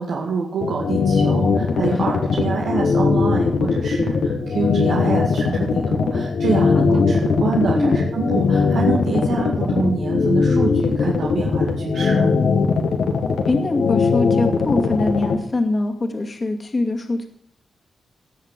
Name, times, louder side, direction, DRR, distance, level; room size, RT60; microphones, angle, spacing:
voice 1, 0.0-12.3, right 5 dB, 85° right, -2 dB, 2.2 m, -26 dB
sound 1, 0.6-15.3, left 5 dB, 75° left, 2.0 m, -19 dB
voice 2, 6.7-7.1 7.7-8.0 13.5-17.3, left 2 dB, 35° left, 4 dB, 2.3 m, -23 dB
18.5 x 6.5 x 6.7 m, 0.66 s
cardioid pair, 80°, 0 cm